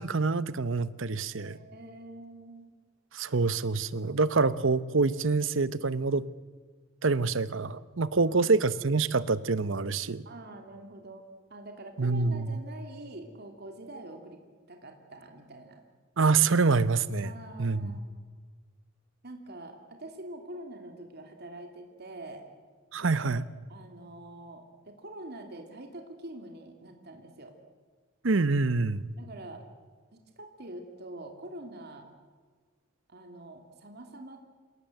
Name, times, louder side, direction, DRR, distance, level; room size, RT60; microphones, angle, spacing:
voice 1, 0.0-1.6 3.1-6.3 7.0-10.2 12.0-12.6 16.2-17.3 17.6-17.9 22.9-23.4 28.2-29.1, right 4 dB, 70° right, 16 dB, 0.9 m, -26 dB
voice 2, 1.3-2.7 8.2-8.5 10.2-11.2 11.5-14.4 14.7-15.8 17.2-18.2 19.2-22.4 23.2-23.4 23.7-27.5 29.2-29.6 30.4-32.1 33.1-34.4, right 1 dB, 55° right, 4 dB, 2.9 m, -45 dB
27.5 x 18.0 x 7.9 m, 1.5 s
head